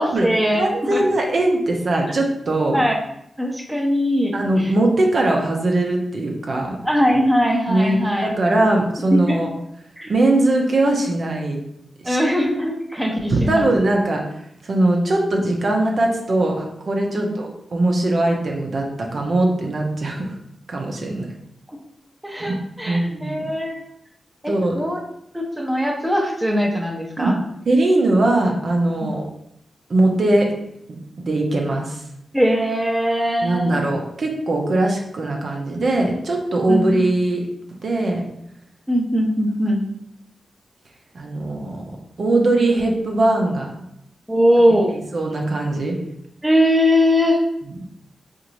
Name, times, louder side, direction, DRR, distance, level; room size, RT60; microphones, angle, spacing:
voice 1, 0.0-1.0 2.7-3.0 3.4-4.7 6.8-8.3 9.1-9.4 10.0-10.1 12.0-13.6 17.2-17.3 21.7-21.8 22.2-23.8 24.4-25.0 25.3-27.4 29.0-29.1 32.3-33.8 36.7-37.0 38.9-39.9 44.3-44.9 46.4-47.4, equal, 10° right, 1 dB, 0.7 m, -20 dB
voice 2, 0.5-2.8 4.3-6.8 7.7-9.5 10.1-11.6 12.0-12.2 13.3-14.2 14.6-20.3 20.7-21.3 22.4-22.5 22.9-23.5 24.5-24.7 27.2-27.3 27.7-29.2 29.9-30.5 31.2-32.0 33.4-37.4 37.8-38.3 41.1-41.8 42.2-43.7 45.1-45.9, right 2 dB, 60° right, 1 dB, 0.6 m, -20 dB
3.8 x 2.6 x 3.0 m, 0.76 s
cardioid pair, 65°, 0 cm